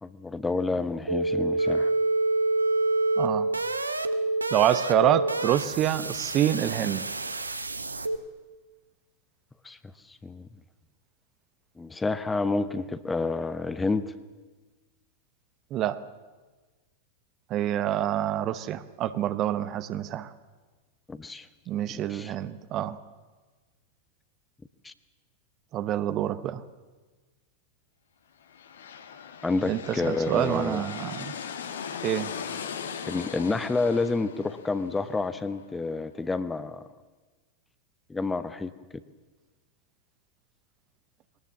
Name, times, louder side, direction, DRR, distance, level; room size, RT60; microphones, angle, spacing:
voice 1, 0.0-1.9 9.6-9.8 10.1-10.5 11.8-14.1 21.1-21.5 22.1-22.3 24.8-24.9 29.4-30.9 33.1-36.8 38.1-38.7, left 3 dB, 10° left, 13 dB, 1.0 m, -29 dB
sound 1, 1.1-8.2, right 2 dB, 80° right, 1.0 m, -27 dB
voice 2, 3.2-3.5 4.5-7.0 15.7-16.0 17.5-20.3 21.7-23.0 25.7-26.6 29.7-31.3 32.0-32.3, right 11 dB, 35° right, 14 dB, 1.0 m, -27 dB
sound 2, 28.4-36.1, left 7 dB, 65° left, 1.7 m, -39 dB
22.0 x 18.5 x 7.4 m, 1.3 s
figure-of-eight pair, 90°, 0 cm